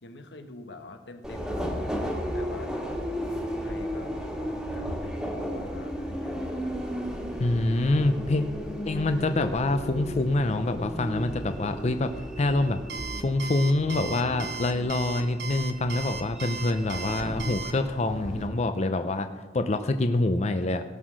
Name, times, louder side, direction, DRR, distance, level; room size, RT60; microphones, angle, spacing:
voice 1, 0.0-3.0 3.5-6.4, left 2 dB, 85° left, 7 dB, 1.1 m, -45 dB
Subway metro underground, 1.2-18.5, equal, 5° right, 1.6 m, -35 dB
voice 2, 7.4-8.4 8.8-12.1 12.4-12.8 13.2-19.3 19.5-20.8, left 2 dB, 40° left, 8 dB, 0.6 m, -26 dB
Alarm, 12.9-17.7, right 5 dB, 70° right, 0.9 m, -36 dB
17.5 x 6.3 x 6.2 m, 1.3 s
head